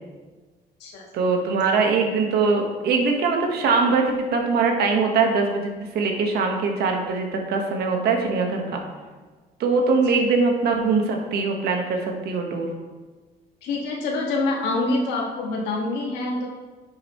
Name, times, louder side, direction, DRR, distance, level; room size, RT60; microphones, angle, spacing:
voice 1, 1.1-8.8 9.6-12.7, right 4 dB, 70° right, 2 dB, 1.5 m, -22 dB
voice 2, 13.6-16.5, left 2 dB, 90° left, -1 dB, 1.9 m, -26 dB
9.9 x 7.0 x 3.2 m, 1.3 s
cardioid pair, 110°, 17 cm